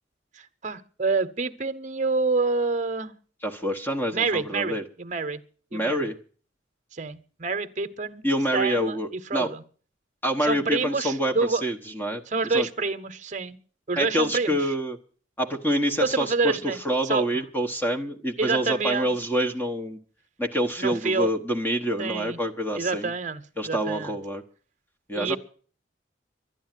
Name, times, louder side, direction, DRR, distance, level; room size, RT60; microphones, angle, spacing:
voice 1, 0.3-3.1 4.1-5.4 5.7-6.1 6.9-8.2 8.5-9.6 10.4-11.6 12.3-13.6 13.9-14.7 16.0-17.2 18.4-19.1 20.8-21.3 22.0-22.4 22.8-24.2 25.2-25.4, right 4 dB, 40° right, 10 dB, 1.0 m, -27 dB
voice 2, 3.4-4.8 5.7-6.1 8.2-9.5 10.2-12.2 12.5-12.7 14.0-15.0 15.4-16.6 16.8-20.0 20.4-23.1 23.6-24.4 25.1-25.4, equal, 10° left, 4 dB, 1.2 m, -26 dB
12.0 x 10.5 x 9.1 m, 0.43 s
head